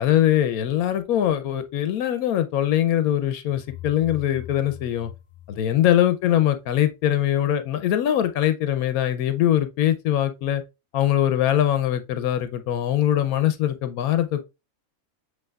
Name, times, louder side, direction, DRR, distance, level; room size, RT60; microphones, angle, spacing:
voice 1, 0.0-5.1 5.5-10.6 10.9-14.4, left 11 dB, 85° left, 1.1 m, -22 dB
sound 1, 3.5-6.4, left 13 dB, 60° left, 0.5 m, -42 dB
7.7 x 2.9 x 2.3 m
omnidirectional pair, 1.5 m